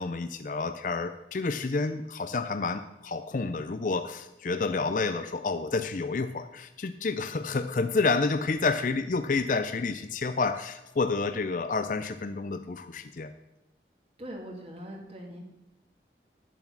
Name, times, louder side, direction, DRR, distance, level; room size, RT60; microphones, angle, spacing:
voice 1, 0.0-13.3, left 4 dB, 45° left, 9 dB, 0.5 m, -29 dB
voice 2, 14.2-15.4, equal, 35° right, 0 dB, 2.0 m, -41 dB
10.0 x 7.1 x 6.0 m, 0.91 s
head